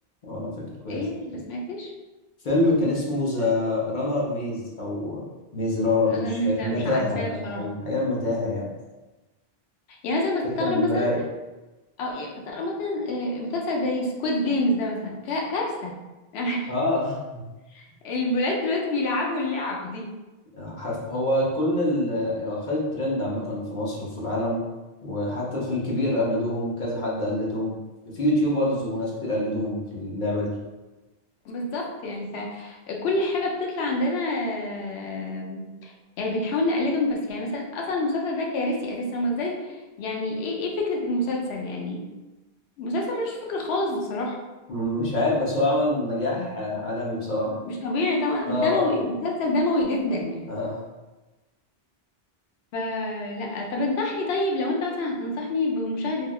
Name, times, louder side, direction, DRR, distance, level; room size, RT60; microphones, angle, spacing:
voice 1, 0.9-1.9 6.1-7.7 10.0-11.1 12.0-15.9 16.3-16.7 17.7-20.1 31.5-42.0 42.8-44.4 46.3-46.5 47.5-50.5 52.7-56.3, left 2 dB, 85° left, -1 dB, 0.8 m, -27 dB
voice 2, 2.4-5.2 5.5-8.7 10.6-11.2 16.7-17.4 20.5-24.6 25.0-27.8 28.1-30.5 44.7-47.5 48.5-48.9 50.5-50.8, left 1 dB, 55° left, -5 dB, 0.8 m, -26 dB
3.3 x 2.2 x 2.2 m, 1.1 s
omnidirectional pair, 1.0 m